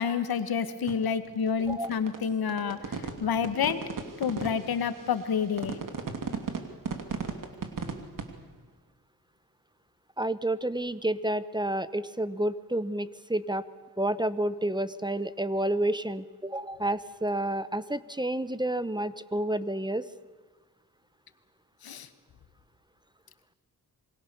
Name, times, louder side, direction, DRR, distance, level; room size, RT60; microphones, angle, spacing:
voice 1, 0.0-3.8 4.2-5.8 21.8-22.1, left 7 dB, 85° left, 11 dB, 1.7 m, -29 dB
sound 1, 0.9-8.3, right 5 dB, 60° right, 3.0 m, -35 dB
voice 2, 10.2-13.6 14.0-20.1, right 1 dB, 10° right, 15 dB, 1.0 m, -30 dB
27.0 x 23.5 x 7.0 m, 1.3 s
cardioid pair, 70°, 35 cm